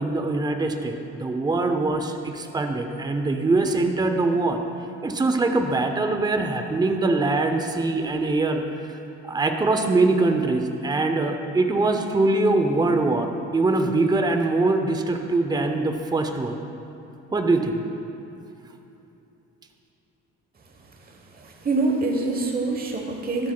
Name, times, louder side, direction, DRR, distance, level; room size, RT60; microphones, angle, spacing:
voice 1, 0.0-4.6 5.0-8.6 9.2-16.6 17.3-17.8, right 2 dB, 15° right, 5 dB, 0.6 m, -23 dB
voice 2, 21.3-23.5, right 3 dB, 30° right, 1 dB, 1.0 m, -25 dB
13.5 x 7.6 x 2.3 m, 2.9 s
cardioid pair, 90°, 30 cm